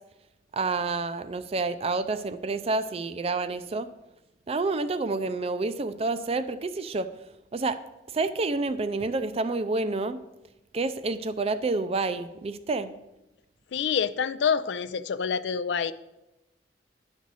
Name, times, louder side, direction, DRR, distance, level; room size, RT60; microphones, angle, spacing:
voice 1, 0.5-3.9 4.5-7.1 7.5-7.8 8.1-10.2 10.7-12.9, right 3 dB, 35° right, 12 dB, 0.4 m, -28 dB
voice 2, 13.7-15.9, left 6 dB, 75° left, 13 dB, 0.4 m, -27 dB
10.5 x 6.2 x 4.1 m, 0.97 s
head